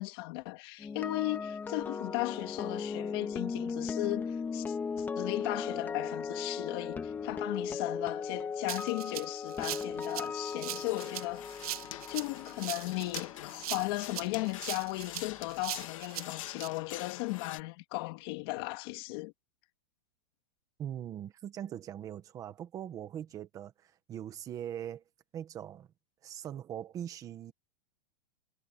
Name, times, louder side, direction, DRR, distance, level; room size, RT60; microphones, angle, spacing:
voice 1, 0.0-11.6 12.1-19.3, left 22 dB, 35° left, 2.6 m, -36 dB
sound 1, 0.8-14.9 15.1-15.4, left 5 dB, 10° left, 1.7 m, -38 dB
Rattle (instrument), 8.7-16.7, right 13 dB, 60° right, 1.7 m, -40 dB
sound 2, 10.7-17.6, left 15 dB, 55° left, 2.1 m, -46 dB
voice 2, 20.8-25.0 25.3-25.9 26.2-27.5, right 10 dB, 15° right, 1.4 m, -41 dB
supercardioid pair, 170°, 21 cm